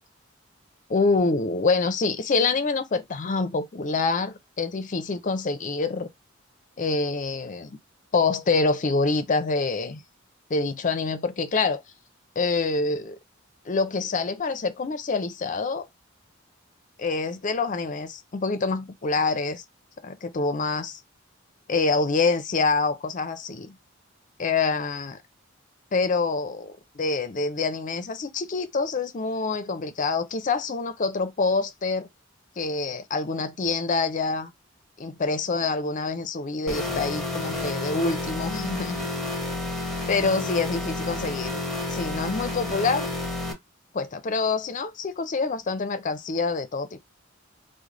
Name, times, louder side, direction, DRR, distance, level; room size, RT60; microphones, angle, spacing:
voice 1, 0.9-6.1 6.8-7.8 8.1-10.0 10.5-11.8 12.4-13.2 13.6-15.9 17.0-19.6 20.0-21.0 21.7-23.8 24.4-25.2 25.9-32.1 32.6-34.5 35.0-39.0 40.1-41.6 41.9-43.1 43.9-47.0, left 4 dB, 40° left, 0.5 m, -26 dB
sound 1, 36.7-43.5, left 2 dB, ahead, 1.0 m, -30 dB
3.2 x 2.1 x 3.7 m
head